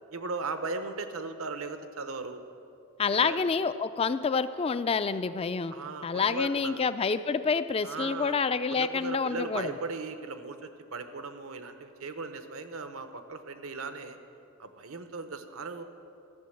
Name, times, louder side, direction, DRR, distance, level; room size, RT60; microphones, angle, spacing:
voice 1, 0.1-2.4 3.1-3.4 5.7-6.9 7.8-8.3 8.7-14.2 14.6-15.8, right 3 dB, 75° right, 9 dB, 0.8 m, -37 dB
voice 2, 3.0-5.7 6.0-9.7, left 5 dB, 25° left, 13 dB, 0.3 m, -28 dB
14.5 x 6.9 x 7.9 m, 2.7 s
head